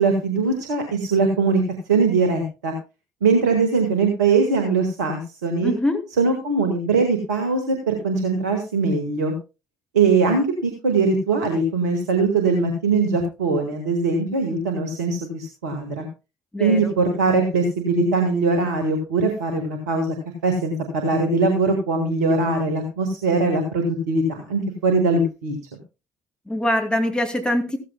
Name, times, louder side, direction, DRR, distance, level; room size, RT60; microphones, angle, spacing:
voice 1, 0.0-1.6 1.9-2.7 3.2-5.7 6.2-9.3 9.9-16.1 16.6-20.1 20.4-25.5, right 3 dB, 75° right, 5 dB, 1.5 m, -21 dB
voice 2, 5.6-6.0 16.5-16.9 26.5-27.8, left 1 dB, 10° left, 5 dB, 2.4 m, -23 dB
14.5 x 14.0 x 2.2 m, 0.29 s
figure-of-eight pair, 50°, 9 cm